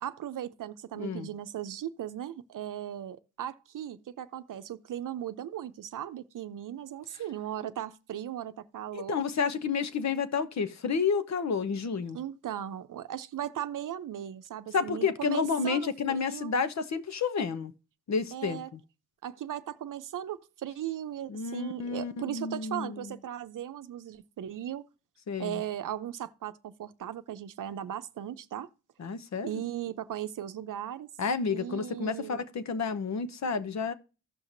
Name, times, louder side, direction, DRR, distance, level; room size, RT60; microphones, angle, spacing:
voice 1, 0.0-9.2 12.1-16.5 18.3-18.7 19.2-24.8 25.4-28.7 29.4-31.1 31.5-32.4, right 11 dB, 60° right, 0.7 m, -37 dB
voice 2, 1.0-1.3 8.9-12.2 14.7-17.7 18.1-18.8 21.3-23.1 25.3-25.6 29.0-29.5 31.2-33.9, left 5 dB, 50° left, 0.9 m, -30 dB
15.5 x 5.7 x 2.6 m
supercardioid pair, 55°, 35 cm